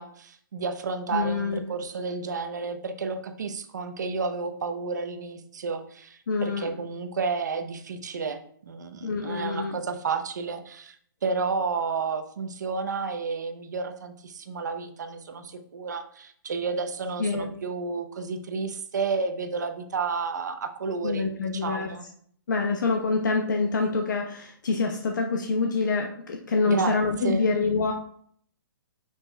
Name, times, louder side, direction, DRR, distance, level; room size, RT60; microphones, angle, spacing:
voice 1, 0.0-11.0 11.2-22.1 26.6-27.0 27.2-27.5, right 4 dB, 50° right, 8 dB, 0.7 m, -31 dB
voice 2, 1.1-1.6 6.3-6.7 9.0-9.7 17.2-17.5 21.0-21.9 22.5-27.9, left 4 dB, 55° left, 2 dB, 0.9 m, -26 dB
8.9 x 5.8 x 2.2 m, 0.62 s
hypercardioid pair, 175°, 12 cm